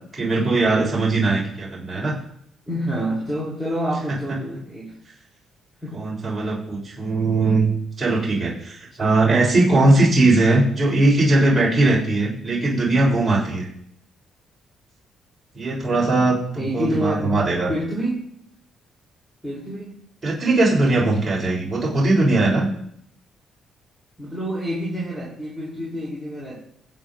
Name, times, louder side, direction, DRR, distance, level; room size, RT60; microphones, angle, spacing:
voice 1, 0.1-2.1 5.9-7.7 8.0-13.7 15.6-16.4 16.7-17.7 20.2-22.7, right 2 dB, 25° right, -4 dB, 3.6 m, -19 dB
voice 2, 2.7-5.0 5.8-6.0 16.6-17.3 17.7-18.2 19.4-20.0 24.2-26.6, equal, 5° left, -6 dB, 3.5 m, -27 dB
22.5 x 8.0 x 2.6 m, 0.69 s
cardioid pair, 90°, 0 cm